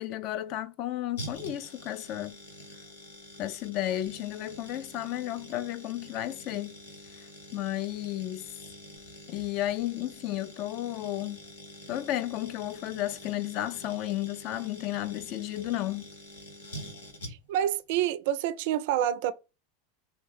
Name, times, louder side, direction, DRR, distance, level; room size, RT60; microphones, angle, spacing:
voice 1, 0.0-2.4 3.4-6.7 7.5-8.5 9.3-11.4 11.9-16.0, left 14 dB, 55° left, 0.3 m, -33 dB
sound 1, 1.2-17.7 17.9-18.0, equal, 85° left, 0.9 m, -46 dB
voice 2, 17.3-19.3, right 11 dB, 65° right, 0.3 m, -28 dB
2.7 x 2.1 x 3.3 m
hypercardioid pair, 95°, 0 cm